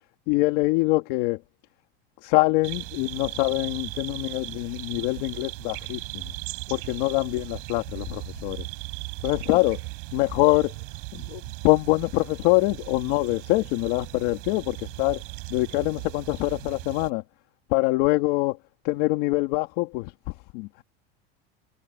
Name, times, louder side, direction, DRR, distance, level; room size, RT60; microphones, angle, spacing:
voice 1, 0.3-1.4 2.2-6.3 6.7-8.7 9.2-9.8 10.1-10.7 11.1-15.2 15.5-17.2 17.7-18.6 18.8-20.8, left 22 dB, 55° left, 2.5 m, -24 dB
sound 1, 2.6-17.1, right 40 dB or more, 55° right, 5.4 m, -38 dB
cardioid pair, 175°, 29 cm